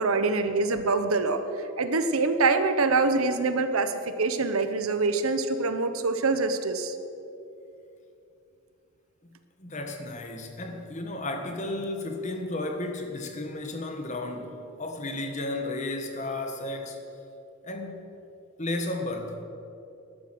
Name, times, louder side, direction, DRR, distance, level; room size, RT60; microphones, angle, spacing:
voice 1, 0.0-1.4 1.8-3.9 4.2-7.0, right 3 dB, 85° right, 9 dB, 1.0 m, -25 dB
voice 2, 9.6-17.0 17.6-18.0 18.6-19.4, left 2 dB, 35° left, 5 dB, 1.4 m, -33 dB
14.0 x 11.5 x 6.0 m, 2.7 s
head